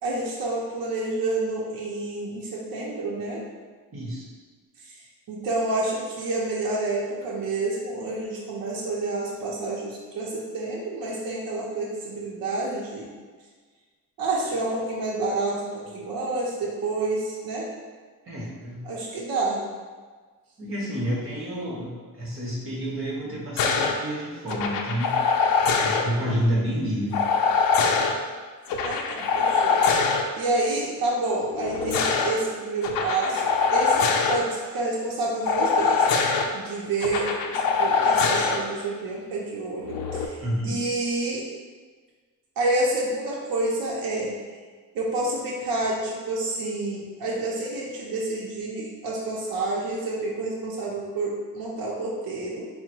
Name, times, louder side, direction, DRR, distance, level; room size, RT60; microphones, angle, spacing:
voice 1, 0.0-3.4 4.8-5.0 5.3-13.1 14.2-17.7 18.8-19.6 28.8-30.1 30.4-41.5 42.6-44.4 44.9-52.7, right 2 dB, 75° right, -4 dB, 0.7 m, -29 dB
voice 2, 3.9-4.3 18.3-18.8 20.6-25.2 25.8-27.3 40.4-40.8, equal, 40° right, -4 dB, 1.1 m, -29 dB
sound 1, 23.6-23.9 24.5-26.0 27.1-28.1 28.7-30.2 31.5-32.3 32.8-34.4 35.5-36.5 37.0-38.6 39.9-40.3, left 5 dB, 75° left, 0.5 m, -23 dB
3.8 x 2.1 x 4.4 m, 1.5 s
wide cardioid pair, 150°, 35 cm